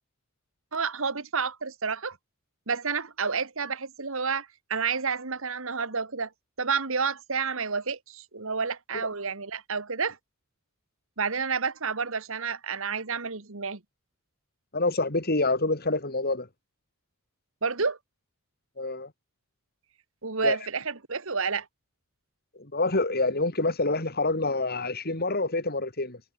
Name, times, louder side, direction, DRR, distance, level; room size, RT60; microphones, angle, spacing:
voice 1, 0.7-2.2 2.7-6.3 6.6-10.2 11.2-13.8 17.6-18.0 20.2-21.7, right 5 dB, 65° right, 1.8 m, -30 dB
voice 2, 14.7-16.5 18.8-19.1 20.4-20.6 22.6-26.2, left 2 dB, 45° left, 4.2 m, -27 dB
head